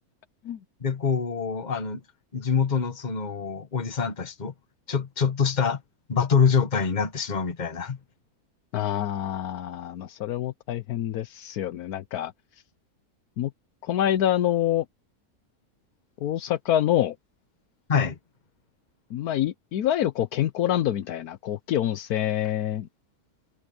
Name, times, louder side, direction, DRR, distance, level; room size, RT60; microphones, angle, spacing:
voice 1, 0.8-2.0 2.3-4.5 4.9-5.8 6.1-8.0 17.9-18.2, left 6 dB, 30° left, 1.3 m, -25 dB
voice 2, 8.7-12.3 13.4-13.5 13.8-14.8 16.2-17.1 19.1-22.9, left 11 dB, 75° left, 1.2 m, -26 dB
omnidirectional pair, 1.6 m